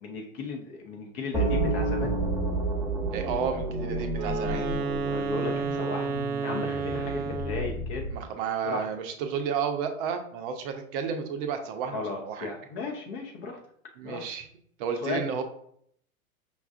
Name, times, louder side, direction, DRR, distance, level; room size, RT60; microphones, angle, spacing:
voice 1, 0.0-2.2 5.1-8.0 8.6-8.9 11.9-13.6 14.0-14.2 15.0-15.3, left 3 dB, 40° left, 2 dB, 0.7 m, -35 dB
sound 1, 1.3-8.2, right 2 dB, 5° right, 0.9 m, -30 dB
voice 2, 3.1-4.7 8.1-12.5 14.0-14.5 14.8-15.4, right 7 dB, 40° right, 6 dB, 0.5 m, -32 dB
Wind instrument woodwind instrument, 4.1-7.8, right 5 dB, 85° right, 0.6 m, -31 dB
5.3 x 2.3 x 2.4 m, 0.66 s
hypercardioid pair, 105°, 43 cm